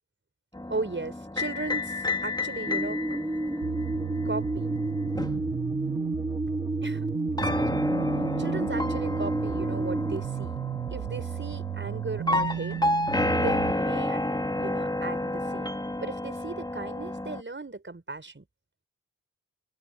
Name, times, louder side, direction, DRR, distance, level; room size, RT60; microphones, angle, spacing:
sound 1, 0.5-6.4 7.4-17.4, left 1 dB, 15° left, 2.7 m, -31 dB
voice 1, 0.7-3.2 4.2-4.8 6.8-7.1 7.4-7.8 8.4-10.6 10.9-12.8 13.1-14.2 14.6-18.4, right 3 dB, 35° right, 5.5 m, -37 dB
sound 2, 2.7-10.2, right 1 dB, 10° right, 1.9 m, -31 dB
sound 3, 3.6-13.7, right 11 dB, 85° right, 0.7 m, -34 dB
open air
cardioid pair, 45°, 33 cm